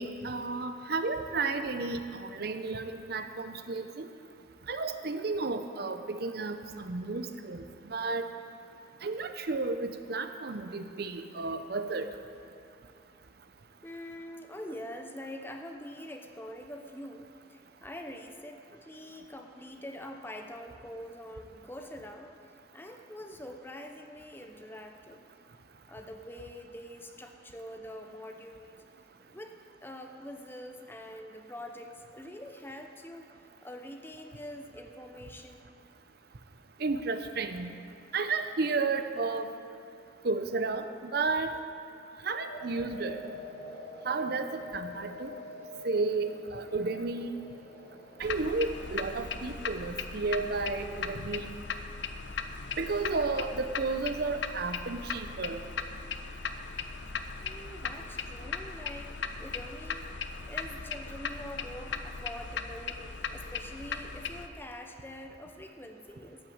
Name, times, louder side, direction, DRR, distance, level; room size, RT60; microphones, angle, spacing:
voice 1, 0.0-4.1 4.7-8.3 9.0-12.1 36.8-37.7 38.1-39.5 40.2-40.9 41.1-41.5 42.2-43.2 44.0-45.3 45.8-47.3 48.2-51.5 52.8-55.6, right 3 dB, 55° right, 8 dB, 0.6 m, -32 dB
voice 2, 13.8-22.3 22.7-25.2 25.9-28.8 29.3-29.5 29.8-33.3 33.6-35.6 57.4-60.1 60.4-63.0 63.3-66.4, left 1 dB, 10° left, 3 dB, 0.7 m, -45 dB
sound 1, 42.5-49.1, left 2 dB, 85° left, 3.3 m, -46 dB
sound 2, 48.2-64.5, left 5 dB, 70° left, 0.6 m, -38 dB
12.5 x 6.2 x 8.6 m, 2.6 s
head